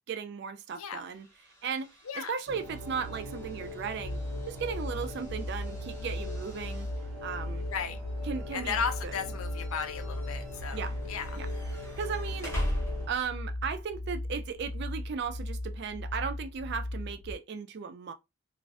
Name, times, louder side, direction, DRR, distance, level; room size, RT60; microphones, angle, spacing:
voice 1, 0.1-1.3 1.6-4.2 4.5-6.9 7.2-7.7 8.2-8.8 9.0-9.2 10.7-11.0 11.3-12.5 13.1-18.1, right 6 dB, 50° right, 0.3 m, -36 dB
sound 1, 0.7-13.5, equal, 15° left, 0.8 m, -42 dB
sound 2, 2.5-13.1, equal, 85° right, 0.8 m, -42 dB
sound 3, 4.0-17.3, left 1 dB, 15° right, 0.6 m, -37 dB
voice 2, 8.5-10.8 11.1-11.4, left 6 dB, 80° left, 0.4 m, -34 dB
2.4 x 2.1 x 2.3 m
head